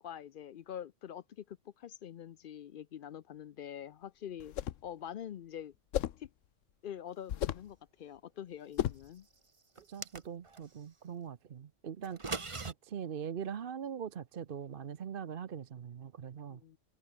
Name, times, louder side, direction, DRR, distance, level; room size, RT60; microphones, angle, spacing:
voice 1, 0.0-4.6 4.8-5.7 6.2-6.3 6.8-9.3 16.5-16.8, left 9 dB, 60° left, 0.6 m, -45 dB
sound 1, 4.4-4.9 5.9-6.3 7.3-7.7 8.8-9.1, left 11 dB, 85° left, 1.1 m, -34 dB
sound 2, 9.7-10.7 12.0-12.7, right 4 dB, 25° right, 1.1 m, -40 dB
voice 2, 9.8-12.2 12.6-16.6, right 8 dB, 50° right, 0.9 m, -42 dB
omnidirectional pair, 1.3 m